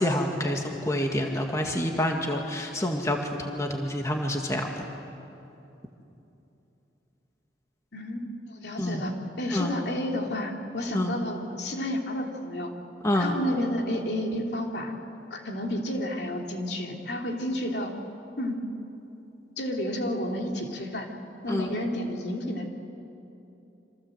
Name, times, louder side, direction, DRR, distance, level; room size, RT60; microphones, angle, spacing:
voice 1, 0.0-4.9 8.8-9.0 9.5-9.7 10.9-11.1 13.0-13.3 21.5-21.7, left 1 dB, 15° left, 2 dB, 1.9 m, -27 dB
voice 2, 7.9-12.7 13.1-14.9 15.3-17.9 18.4-18.6 19.6-21.1 21.4-22.7, left 1 dB, 65° left, 1 dB, 3.0 m, -31 dB
27.5 x 26.5 x 7.9 m, 2.9 s
head